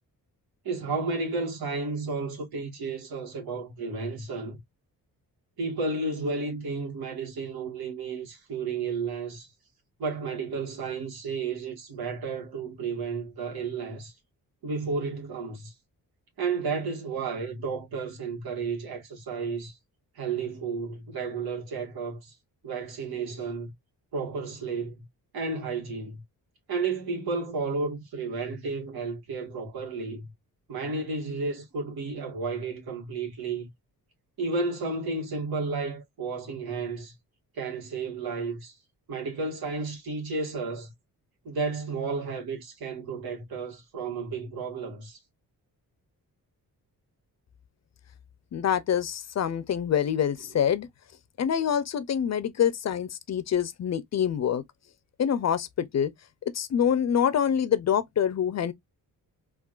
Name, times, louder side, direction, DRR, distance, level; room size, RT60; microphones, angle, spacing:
voice 1, 0.6-4.6 5.6-9.5 10.0-14.1 14.6-15.7 16.4-19.8 20.1-22.3 22.6-23.7 24.1-25.0 25.3-26.2 26.7-30.2 30.7-33.7 34.4-37.1 37.5-38.8 39.1-40.9 41.4-45.2, right 4 dB, 80° right, 1.6 m, -32 dB
voice 2, 48.5-50.9 51.4-54.6 55.2-56.1 56.5-58.7, left 8 dB, 45° left, 0.6 m, -26 dB
3.7 x 2.4 x 2.4 m
cardioid pair, 100°, 37 cm